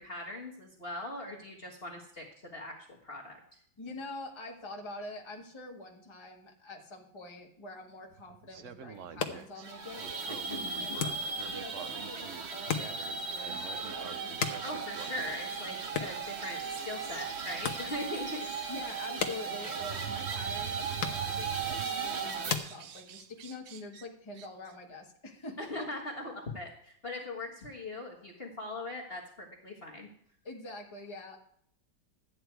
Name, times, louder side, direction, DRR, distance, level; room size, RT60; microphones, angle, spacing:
voice 1, 0.0-2.2 2.5-3.4 10.5-11.0 14.6-18.7 25.6-30.1, left 2 dB, 30° left, -2 dB, 1.6 m, -40 dB
voice 2, 3.8-11.1 11.5-14.3 18.7-25.9 30.4-31.4, left 2 dB, 15° left, 0 dB, 1.6 m, -45 dB
sound 1, 8.1-9.7 10.0-15.4 16.1-19.0 19.7-21.9 22.3-24.1 24.3-24.7, right 10 dB, 85° right, 0.6 m, -47 dB
sound 2, 8.9-23.4, left 6 dB, 50° left, 1.2 m, -41 dB
sound 3, 9.6-22.6, right 5 dB, 40° right, 1.1 m, -37 dB
13.0 x 9.3 x 4.6 m, 0.65 s
omnidirectional pair, 2.2 m